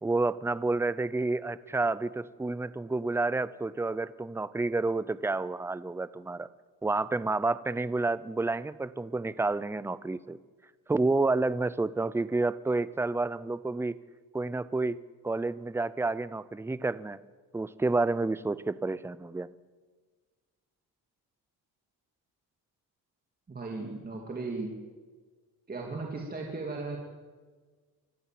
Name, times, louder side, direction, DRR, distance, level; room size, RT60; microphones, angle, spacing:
voice 1, 0.0-6.5 6.8-10.4 10.9-14.0 14.3-15.0 15.2-17.2 17.5-19.6, right 3 dB, 5° right, 17 dB, 0.5 m, -29 dB
voice 2, 23.5-24.7 25.7-27.0, right 3 dB, 25° right, 0 dB, 2.7 m, -36 dB
25.0 x 14.0 x 7.7 m, 1.4 s
cardioid pair, 120°, 39 cm